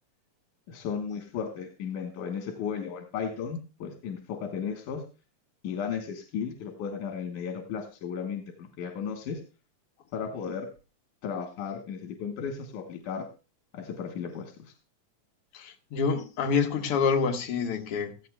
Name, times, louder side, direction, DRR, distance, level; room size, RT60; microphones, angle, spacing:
voice 1, 0.7-5.0 5.6-9.4 10.1-10.7 11.2-13.3 13.7-14.7, left 7 dB, 90° left, 2.7 m, -35 dB
voice 2, 15.5-18.3, left 5 dB, 60° left, 1.8 m, -27 dB
17.0 x 13.5 x 2.3 m
omnidirectional pair, 3.5 m